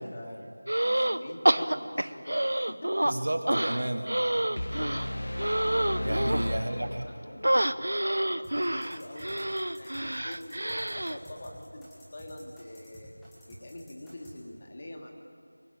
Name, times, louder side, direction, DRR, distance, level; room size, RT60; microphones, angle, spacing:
voice 1, 0.0-3.1 4.9-5.5 6.5-13.1 13.5-15.1, left 1 dB, 30° left, 1 dB, 2.3 m, -45 dB
sound 1, 0.7-1.2 1.4-3.1 3.5-6.5 7.4-11.2, right 1 dB, 80° right, 0.9 m, -28 dB
voice 2, 3.1-4.1 6.0-7.0, right 1 dB, 60° right, 4 dB, 2.2 m, -31 dB
sound 2, 4.6-7.5, left 1 dB, 80° left, 1.3 m, -34 dB
sound 3, 8.4-14.3, equal, ahead, 2.1 m, -50 dB
24.0 x 16.0 x 8.7 m, 2.2 s
figure-of-eight pair, 175°, 0 cm